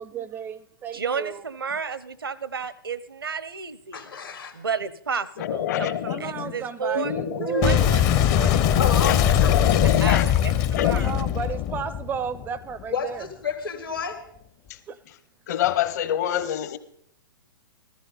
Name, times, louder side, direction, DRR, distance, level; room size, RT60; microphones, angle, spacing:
voice 1, 0.0-1.4 6.1-7.9 10.9-13.3 14.9-15.0, right 7 dB, 15° right, 16 dB, 0.4 m, -32 dB
voice 2, 0.9-4.1 4.5-7.1 7.5-8.8 10.0-10.5 10.8-11.2, right 6 dB, 80° right, 17 dB, 0.7 m, -32 dB
voice 3, 3.9-4.6 6.9-7.7 8.8-9.6 12.9-14.2, left 5 dB, 75° left, 6 dB, 2.2 m, -30 dB
voice 4, 5.4-6.6 7.0-7.5 8.4-11.0 14.7-14.8 15.5-16.8, left 11 dB, 50° left, 13 dB, 0.9 m, -26 dB
Boom, 7.6-12.8, left 10 dB, 30° left, 0.6 m, -21 dB
14.5 x 13.5 x 4.0 m, 0.69 s
figure-of-eight pair, 115°, 12 cm